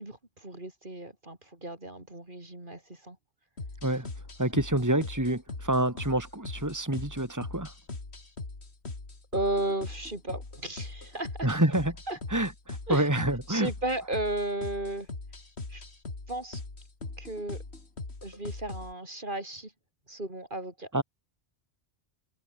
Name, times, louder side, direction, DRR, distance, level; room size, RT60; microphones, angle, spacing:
voice 1, 0.0-3.2 9.3-11.5 12.1-12.2 12.9-13.0 13.5-15.1 15.7-15.8 16.3-16.6 17.2-17.6 18.2-19.7 20.1-20.9, right 1 dB, 50° right, 4.5 m, -34 dB
sound 1, 3.6-18.9, left 3 dB, 85° left, 3.4 m, -41 dB
voice 2, 3.8-7.7 11.4-12.0 12.3-13.7 20.9-21.0, right 1 dB, 15° right, 3.0 m, -28 dB
omnidirectional pair, 1.1 m